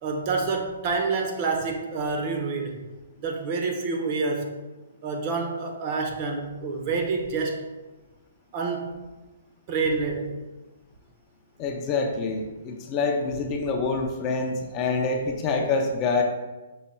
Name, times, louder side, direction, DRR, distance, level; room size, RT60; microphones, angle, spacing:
voice 1, 0.0-2.8 3.2-4.5 5.0-7.6 8.5-9.0 9.7-10.3, right 4 dB, 30° right, 2 dB, 0.6 m, -28 dB
voice 2, 11.6-16.2, left 4 dB, 25° left, 2 dB, 0.4 m, -26 dB
5.4 x 2.2 x 4.2 m, 1.1 s
hypercardioid pair, 165°, 0 cm